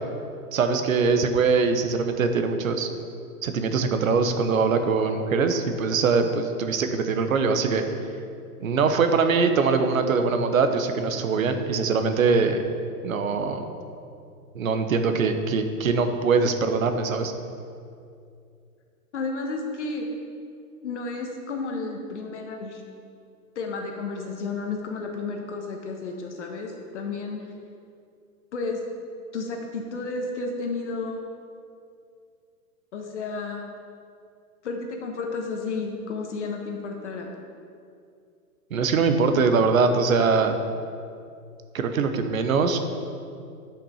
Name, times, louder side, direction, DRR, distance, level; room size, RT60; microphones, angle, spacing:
voice 1, 0.5-2.9 3.4-7.8 8.6-12.6 13.0-13.7 14.5-17.3 38.7-40.6 41.7-42.8, right 4 dB, 60° right, 7 dB, 1.0 m, -22 dB
voice 2, 19.1-20.1 20.8-22.8 23.5-27.4 28.5-28.8 29.3-31.3 32.9-33.7 34.6-37.3, left 3 dB, 45° left, 2 dB, 1.2 m, -32 dB
10.0 x 5.9 x 5.7 m, 2.4 s
hypercardioid pair, 170°, 47 cm